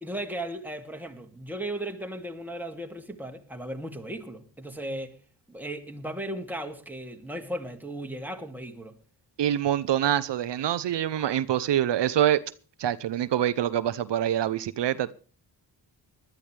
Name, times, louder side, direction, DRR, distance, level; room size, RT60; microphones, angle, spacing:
voice 1, 0.0-5.2 5.5-8.9 11.2-11.7, right 1 dB, 5° right, 2.5 m, -36 dB
voice 2, 9.4-12.4 12.8-15.1, right 11 dB, 75° right, 0.8 m, -25 dB
20.0 x 12.5 x 3.4 m
cardioid pair, 85°, 43 cm